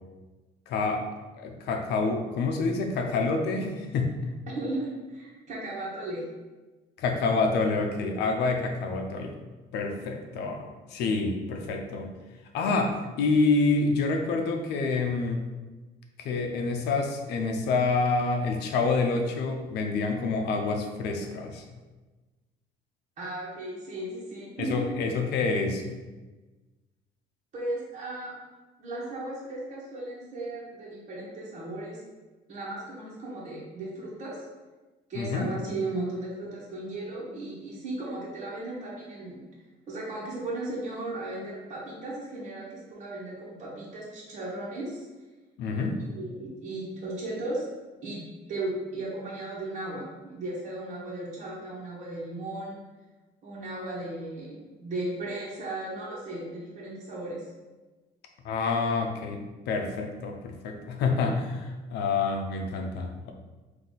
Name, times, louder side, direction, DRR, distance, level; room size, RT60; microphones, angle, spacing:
voice 1, 0.7-1.1 1.4-4.1 7.0-9.4 9.7-12.1 12.5-15.4 16.2-21.6 24.6-25.8 35.1-35.5 45.6-46.0 58.4-59.4 59.7-63.3, left 3 dB, 80° left, 4 dB, 0.6 m, -27 dB
voice 2, 4.5-6.2 23.2-25.0 27.5-28.3 28.8-32.0 32.5-34.4 35.1-39.4 39.9-45.1 46.1-47.7 48.0-48.2 48.5-52.8 53.4-57.4, right 2 dB, 45° right, -7 dB, 1.3 m, -36 dB
3.8 x 2.8 x 4.0 m, 1.2 s
cardioid pair, 110°, 17 cm